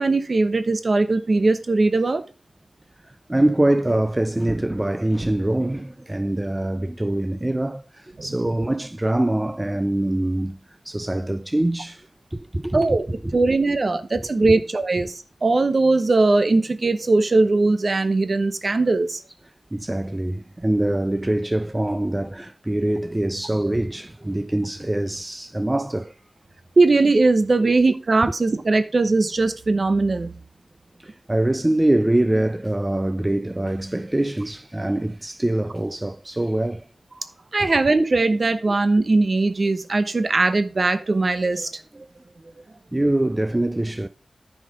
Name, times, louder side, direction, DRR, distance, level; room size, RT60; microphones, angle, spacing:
voice 1, 0.0-2.2 8.2-8.3 12.7-13.0 13.3-19.2 26.8-30.3 37.5-42.1, right 3 dB, 55° right, 1.0 m, -20 dB
voice 2, 3.1-10.6 10.9-13.0 13.2-13.3 19.7-26.1 31.0-36.9 42.9-44.1, right 1 dB, 20° right, 0.4 m, -24 dB
9.6 x 5.0 x 5.2 m
wide cardioid pair, 60°, 0 cm